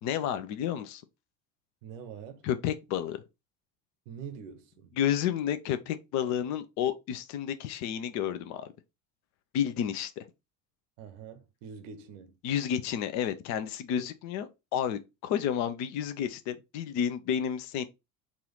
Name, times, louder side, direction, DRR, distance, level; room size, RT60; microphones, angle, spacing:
voice 1, 0.0-1.0 2.4-3.2 5.0-8.7 9.5-10.2 12.4-14.5 14.7-17.8, left 9 dB, 40° left, 0.6 m, -31 dB
voice 2, 1.8-2.5 4.1-5.0 11.0-12.4 14.0-14.1, right 6 dB, 60° right, 0.8 m, -44 dB
4.2 x 2.4 x 3.9 m
figure-of-eight pair, 70°, 43 cm